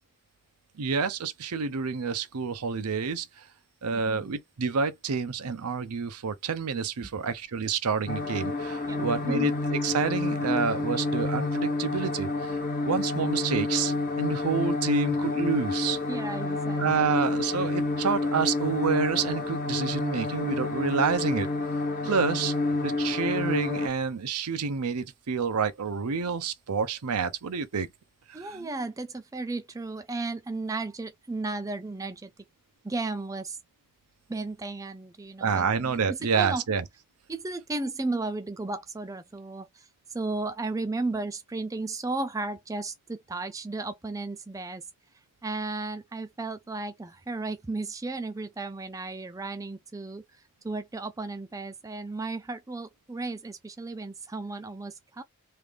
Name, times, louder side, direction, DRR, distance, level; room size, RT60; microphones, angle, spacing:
voice 1, 0.8-3.3 3.8-16.0 16.8-21.5 22.0-22.5 22.8-27.9 28.3-28.7 35.4-36.8, right 5 dB, 90° right, 0.6 m, -28 dB
sound 1, 8.1-23.9, left 2 dB, 40° left, 0.6 m, -29 dB
voice 2, 8.9-9.5 16.1-17.1 28.3-32.3 32.8-33.6 34.3-36.6 37.3-44.8 45.4-50.2 50.6-55.2, right 3 dB, 15° right, 0.4 m, -34 dB
3.3 x 2.5 x 3.4 m
head